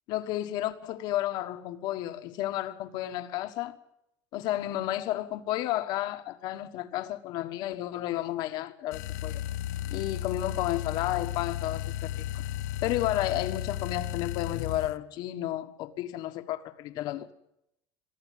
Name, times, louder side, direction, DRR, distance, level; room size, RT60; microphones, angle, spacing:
voice 1, 0.1-3.8 4.3-9.4 9.9-12.3 12.8-17.3, left 14 dB, 50° left, 1.5 m, -32 dB
sound 1, 8.9-15.0, left 13 dB, 85° left, 0.7 m, -34 dB
23.0 x 13.5 x 9.4 m
cardioid pair, 160°, 9 cm